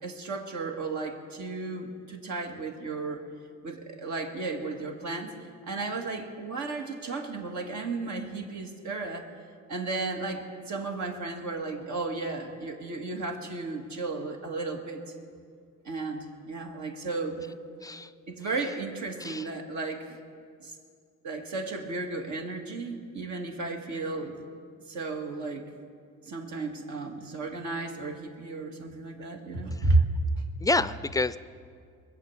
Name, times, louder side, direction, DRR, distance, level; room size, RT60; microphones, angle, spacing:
voice 1, 0.0-3.2 3.6-5.3 5.6-9.3 9.7-15.0 15.9-17.5 18.3-20.2 20.6-20.8 21.2-24.4 24.9-25.7 26.2-30.0, right 3 dB, 70° right, 2 dB, 2.0 m, -33 dB
voice 2, 30.6-31.4, left 2 dB, 10° left, 15 dB, 0.4 m, -27 dB
21.5 x 7.8 x 7.3 m, 2.2 s
cardioid pair, 90°, 30 cm